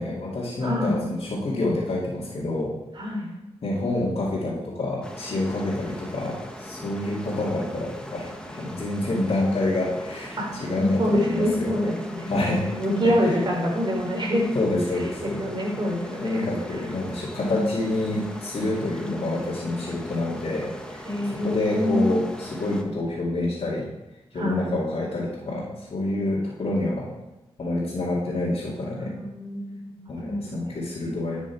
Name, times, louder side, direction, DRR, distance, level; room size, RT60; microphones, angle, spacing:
voice 1, 0.0-2.7 3.6-11.8 12.2-12.7 13.0-13.4 14.5-15.4 16.2-23.9 24.3-27.1 27.6-29.2 30.1-31.4, left 2 dB, 65° left, -7 dB, 2.5 m, -27 dB
voice 2, 0.6-1.0 3.0-3.3 10.4-10.5 10.8-14.4 15.2-16.5 17.3-17.8 18.8-19.8 21.0-22.1 24.3-24.7 29.0-30.7, left 1 dB, 45° right, -1 dB, 3.4 m, -26 dB
sound 1, 5.0-22.8, equal, 10° left, 1.5 m, -40 dB
11.5 x 6.2 x 4.6 m, 1.0 s
cardioid pair, 55°, 11 cm